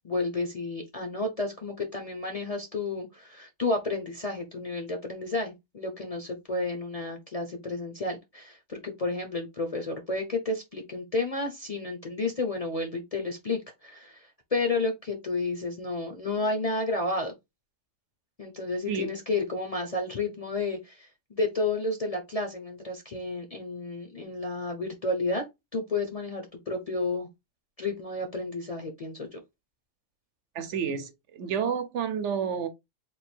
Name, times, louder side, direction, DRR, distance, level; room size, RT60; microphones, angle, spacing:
voice 1, 0.0-17.3 18.4-25.4 25.7-27.3 27.8-29.4, left 2 dB, 40° left, 0.6 m, -31 dB
voice 2, 30.5-32.7, right 7 dB, 65° right, 0.9 m, -30 dB
3.4 x 2.5 x 4.3 m
omnidirectional pair, 1.4 m